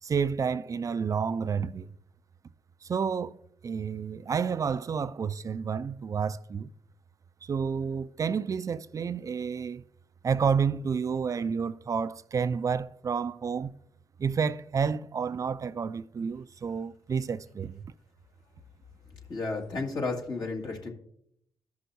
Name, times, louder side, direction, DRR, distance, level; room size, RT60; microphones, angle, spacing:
voice 1, 0.0-1.9 2.8-3.4 3.6-6.7 7.4-9.8 10.2-13.8 14.2-17.9, right 6 dB, 45° right, 0.4 m, -30 dB
voice 2, 19.3-20.9, left 3 dB, 65° left, 2.1 m, -32 dB
14.0 x 5.7 x 2.7 m
supercardioid pair, 55°, 8 cm